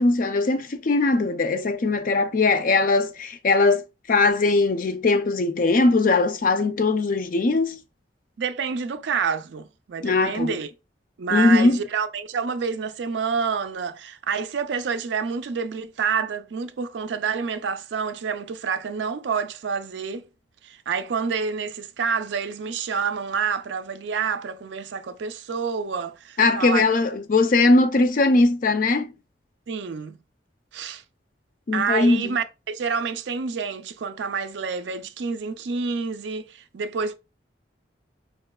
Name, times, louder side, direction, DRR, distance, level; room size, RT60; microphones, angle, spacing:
voice 1, 0.0-3.8 4.1-7.8 10.0-10.5 11.3-11.8 26.4-29.1 31.7-32.3, left 3 dB, 50° left, 0.5 m, -20 dB
voice 2, 8.4-10.7 11.2-20.3 20.6-26.9 29.7-30.2 30.7-31.0 31.7-37.1, right 5 dB, 75° right, 0.4 m, -28 dB
4.8 x 3.0 x 2.2 m
head